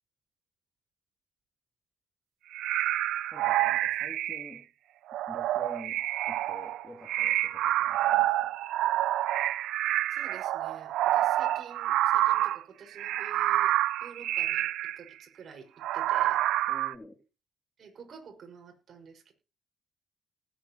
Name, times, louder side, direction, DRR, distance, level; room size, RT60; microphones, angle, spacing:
sound 1, 2.5-4.6 5.1-12.6 13.0-15.0 15.8-16.9, right 14 dB, 85° right, 0.5 m, -28 dB
voice 1, 3.3-4.7 5.3-8.6 16.7-17.2, left 1 dB, 15° left, 3 dB, 2.7 m, -48 dB
voice 2, 10.1-13.7 14.0-14.7 15.0-16.4 17.8-19.3, right 6 dB, 55° right, 3 dB, 5.8 m, -50 dB
19.5 x 8.9 x 3.0 m, 0.31 s
cardioid pair, 90°, 0 cm